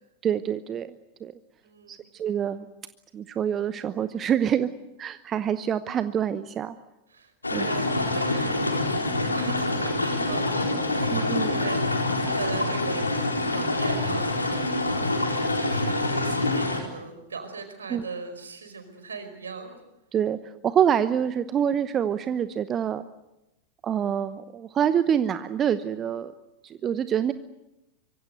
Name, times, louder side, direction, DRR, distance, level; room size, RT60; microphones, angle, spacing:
voice 1, 0.2-1.3 1.9-2.7 3.1-4.7 5.0-6.8 7.5-7.7 11.1-11.5 17.9-18.0 20.1-23.1 23.8-26.3 26.6-27.3, right 9 dB, 25° right, 13 dB, 0.9 m, -26 dB
voice 2, 1.6-2.0 7.1-13.1 13.5-19.7, right 5 dB, 70° right, 7 dB, 5.1 m, -38 dB
sound 1, 7.4-16.8, left 2 dB, 80° left, 4.1 m, -26 dB
25.0 x 24.0 x 8.0 m, 0.95 s
figure-of-eight pair, 90°, 0 cm